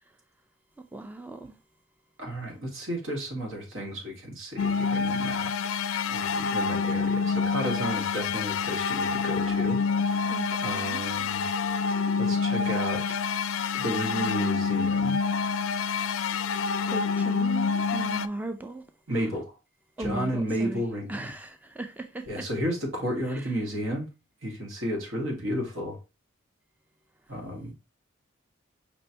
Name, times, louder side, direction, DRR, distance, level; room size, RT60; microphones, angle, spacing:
voice 1, 0.8-1.6 10.2-11.1 16.9-18.8 19.1-19.3 20.0-20.8 21.1-22.5 23.2-23.5, right 2 dB, 10° right, 0.3 m, -37 dB
voice 2, 2.2-5.5 6.1-9.8 10.6-11.4 12.2-13.0 13.7-15.2 19.1-19.5 20.0-21.3 22.3-24.1 24.4-26.0 27.3-27.7, equal, 80° right, 1.8 m, -32 dB
sound 1, 4.6-18.3, left 5 dB, 85° left, 0.3 m, -27 dB
5.3 x 3.2 x 2.7 m
head